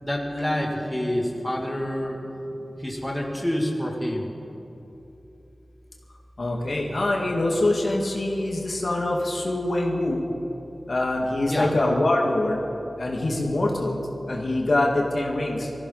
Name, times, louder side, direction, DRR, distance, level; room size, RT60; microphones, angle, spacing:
voice 1, 0.0-2.2 2.8-4.3 11.5-11.7, left 1 dB, 15° left, -1 dB, 2.4 m, -27 dB
voice 2, 6.4-10.2 10.9-14.0 14.3-15.7, left 1 dB, 70° left, -1 dB, 2.1 m, -24 dB
20.0 x 15.0 x 4.1 m, 2.9 s
wide cardioid pair, 60°, 0 cm